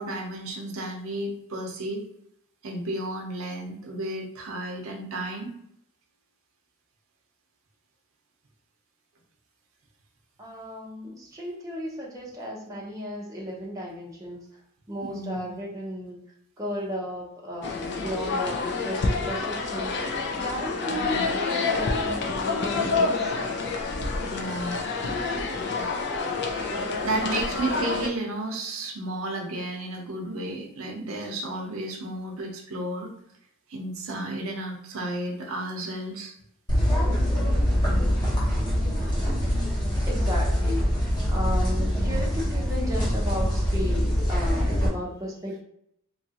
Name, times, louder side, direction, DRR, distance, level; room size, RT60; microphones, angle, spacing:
voice 1, 0.0-2.0 2.6-5.5 15.0-15.5 20.9-21.3 24.2-24.8 25.6-25.8 26.5-26.7 27.0-33.1 33.7-36.3 42.0-42.2, right 1 dB, 75° right, 1 dB, 0.7 m, -33 dB
voice 2, 10.4-14.4 14.9-16.2 16.6-20.0 20.3-23.3 40.1-40.9 41.3-45.6, equal, 15° right, -3 dB, 0.6 m, -34 dB
sound 1, 17.6-28.1, left 3 dB, 55° left, 0.4 m, -28 dB
sound 2, 36.7-44.9, equal, 20° left, 0.9 m, -24 dB
2.8 x 2.4 x 2.8 m, 0.74 s
head